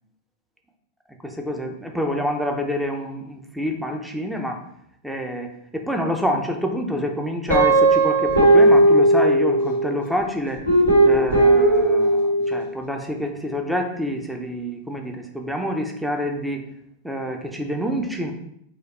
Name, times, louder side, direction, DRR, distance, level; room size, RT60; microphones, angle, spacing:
voice 1, 1.2-4.6 5.0-10.6 11.0-16.6 17.0-18.3, equal, 5° right, 3 dB, 0.6 m, -27 dB
Guitar, 7.5-10.0 10.7-12.6, right 1 dB, 85° right, 1.5 m, -16 dB
4.8 x 2.4 x 4.2 m, 0.72 s
figure-of-eight pair, 90°, 0 cm